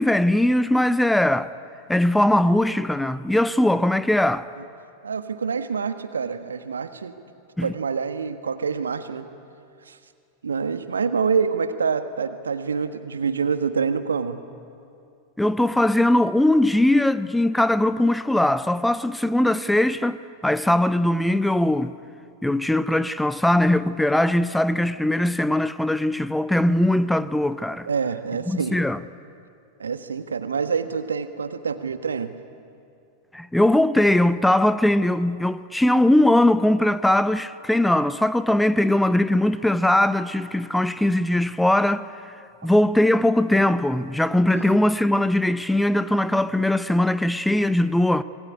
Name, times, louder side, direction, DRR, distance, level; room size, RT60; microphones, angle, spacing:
voice 1, 0.0-1.5 1.9-4.5 7.6-7.7 15.4-21.9 22.4-27.9 28.5-29.0 33.3-42.1 42.6-48.2, left 1 dB, 5° left, 0.7 m, -20 dB
voice 2, 5.0-7.1 7.6-9.3 9.9-10.0 10.4-14.4 27.8-28.8 29.8-32.3 44.5-44.8, right 5 dB, 70° right, 1.4 m, -26 dB
26.5 x 21.5 x 9.9 m
figure-of-eight pair, 90°, 0 cm